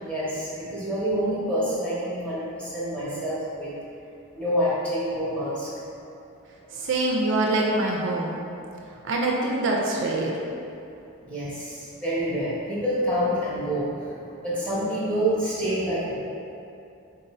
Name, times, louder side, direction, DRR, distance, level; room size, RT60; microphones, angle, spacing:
voice 1, 0.0-3.7 4.4-5.7 11.2-14.0 14.4-16.2, equal, 5° left, -9 dB, 0.9 m, -27 dB
voice 2, 6.7-8.4 9.0-10.3, right 2 dB, 55° right, -1 dB, 0.4 m, -24 dB
4.0 x 2.6 x 4.1 m, 2.6 s
head